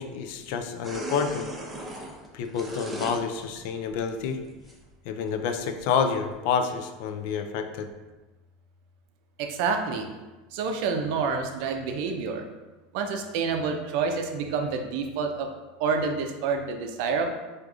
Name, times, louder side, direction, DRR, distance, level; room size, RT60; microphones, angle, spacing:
voice 1, 0.0-1.5 2.3-4.4 5.1-7.9, left 6 dB, 65° left, 7 dB, 0.3 m, -28 dB
sound 1, 0.8-3.2 3.6-4.7 5.2-5.3 5.8-5.9 6.3-6.4, right 1 dB, 10° right, 0.7 m, -37 dB
voice 2, 9.4-10.1 10.5-12.4 12.9-15.5 15.8-17.3, right 5 dB, 65° right, 4 dB, 0.5 m, -28 dB
4.7 x 2.5 x 2.4 m, 1.2 s
supercardioid pair, 105°, 0 cm